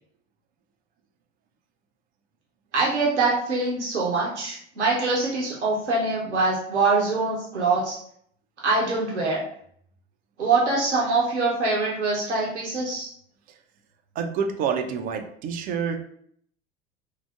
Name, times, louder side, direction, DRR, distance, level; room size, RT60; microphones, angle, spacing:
voice 1, 2.7-8.0 8.6-9.4 10.4-13.1, right 3 dB, 85° right, -4 dB, 0.8 m, -24 dB
voice 2, 14.2-16.0, right 6 dB, 25° right, 4 dB, 0.4 m, -27 dB
4.5 x 2.0 x 2.3 m, 0.64 s
figure-of-eight pair, 80°, 34 cm